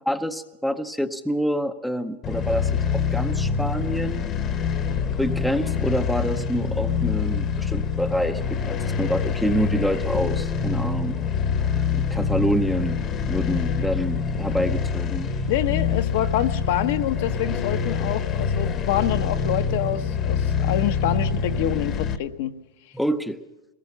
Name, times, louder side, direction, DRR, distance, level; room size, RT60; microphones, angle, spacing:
voice 1, 0.1-4.3 5.2-8.4 8.7-11.2 11.9-13.0 13.3-15.3 22.9-23.4, equal, ahead, 7 dB, 0.8 m, -27 dB
sound 1, 2.2-22.2, left 6 dB, 25° left, 1.2 m, -25 dB
voice 2, 15.5-22.5, left 12 dB, 55° left, 7 dB, 1.2 m, -26 dB
23.0 x 19.0 x 7.1 m, 1.0 s
supercardioid pair, 155°, 0 cm